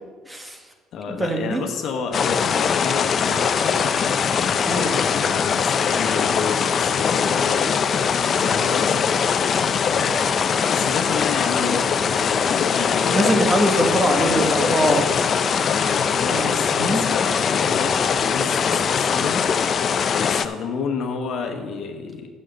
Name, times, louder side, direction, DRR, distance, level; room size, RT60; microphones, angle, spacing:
voice 1, 0.3-0.6 1.2-1.6 4.7-4.9 13.1-15.1 16.3-17.0, right 1 dB, 15° right, 3 dB, 1.4 m, -22 dB
voice 2, 0.9-4.0 4.4-7.7 8.2-9.1 9.8-13.9 15.6-19.4 20.1-22.3, left 5 dB, 65° left, 2 dB, 1.2 m, -30 dB
sound 1, 2.1-20.5, left 6 dB, 45° left, 0.5 m, -21 dB
6.5 x 6.4 x 7.7 m, 1.4 s
cardioid pair, 90°, 0 cm